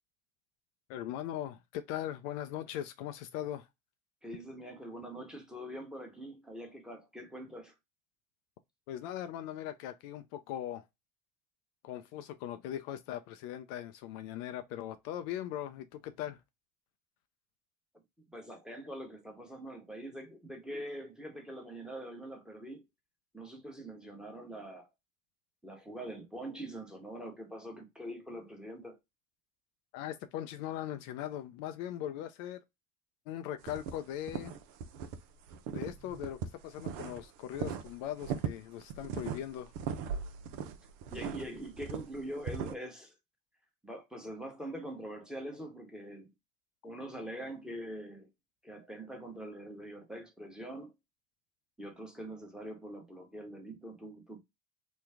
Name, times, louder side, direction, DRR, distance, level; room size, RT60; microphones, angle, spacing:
voice 1, 0.9-3.7 8.9-10.8 11.8-16.4 29.9-32.6 33.3-34.6 35.7-39.7, left 11 dB, 65° left, 0.5 m, -40 dB
voice 2, 4.2-7.7 18.3-22.9 23.3-24.9 25.6-29.0 41.1-43.1 43.8-46.3 46.8-48.3 48.6-50.9 51.8-54.4, right 1 dB, ahead, 1.1 m, -44 dB
sound 1, 33.6-35.2 35.5-37.2 37.5-42.7, right 7 dB, 70° right, 0.7 m, -39 dB
3.2 x 2.2 x 3.4 m
hypercardioid pair, 75°, 43 cm